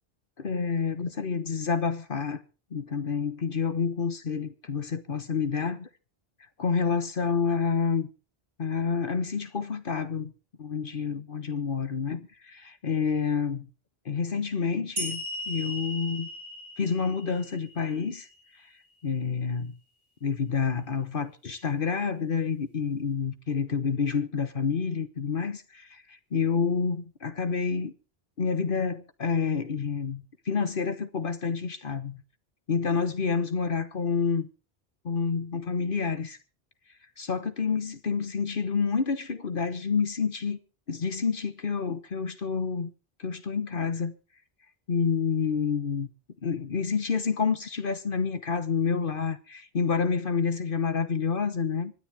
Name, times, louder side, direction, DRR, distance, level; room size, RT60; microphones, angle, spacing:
voice 1, 0.4-2.4 2.7-5.9 6.6-8.1 8.6-10.3 10.6-13.7 14.0-16.3 16.8-18.3 19.0-19.7 20.2-27.9 28.4-32.2 32.7-34.5 35.0-36.4 37.2-40.6 40.9-42.9 43.2-44.1 44.9-46.1 46.4-51.9, left 5 dB, 60° left, 1.3 m, -28 dB
sound 1, 15.0-18.3, equal, 70° right, 5.3 m, -37 dB
25.0 x 10.5 x 3.5 m
omnidirectional pair, 1.0 m